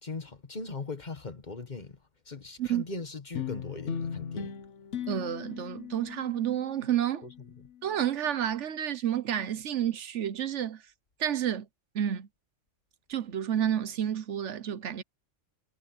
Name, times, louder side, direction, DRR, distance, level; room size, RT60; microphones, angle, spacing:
voice 1, 0.0-2.0 2.2-4.5 7.2-7.7, left 3 dB, 35° left, 1.5 m, -40 dB
sound 1, 3.4-8.0, left 7 dB, 70° left, 1.4 m, -39 dB
voice 2, 5.1-7.2 7.8-10.8 11.2-11.7 11.9-12.3 13.1-15.0, right 10 dB, 70° right, 1.2 m, -30 dB
omnidirectional pair, 1.3 m